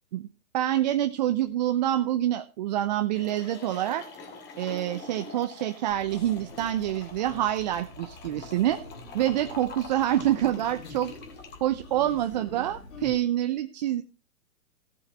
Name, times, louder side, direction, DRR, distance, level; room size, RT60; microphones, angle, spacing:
voice 1, 0.5-4.0 4.6-8.8 9.1-11.1 11.6-14.0, right 12 dB, 30° right, 9 dB, 0.5 m, -26 dB
sound 1, 3.1-11.6, left 3 dB, 25° left, 2.6 m, -45 dB
sound 2, 5.9-13.2, left 3 dB, 70° left, 4.4 m, -45 dB
14.5 x 7.3 x 5.1 m, 0.33 s
hypercardioid pair, 135°, 44 cm